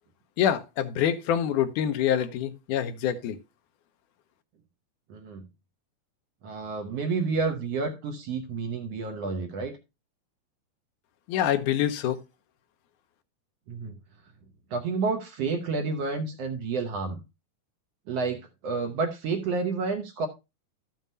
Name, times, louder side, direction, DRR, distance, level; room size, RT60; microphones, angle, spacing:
voice 1, 0.4-3.4 11.3-12.2, left 10 dB, 80° left, 2.2 m, -26 dB
voice 2, 5.1-5.4 6.4-9.8 13.7-14.0 14.7-17.2 18.1-20.3, right 4 dB, 65° right, 1.8 m, -30 dB
13.5 x 7.4 x 2.7 m
omnidirectional pair, 3.7 m